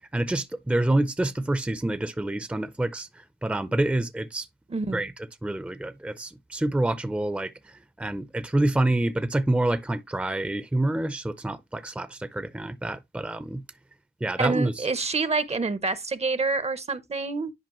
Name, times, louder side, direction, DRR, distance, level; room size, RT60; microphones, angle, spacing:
voice 1, 0.1-4.5 4.9-5.1 5.4-13.6 14.2-14.8, right 1 dB, 5° right, 0.5 m, -27 dB
voice 2, 4.7-5.0 14.4-17.5, right 3 dB, 40° right, 0.7 m, -27 dB
10.5 x 5.0 x 3.0 m
wide cardioid pair, 115°, 17 cm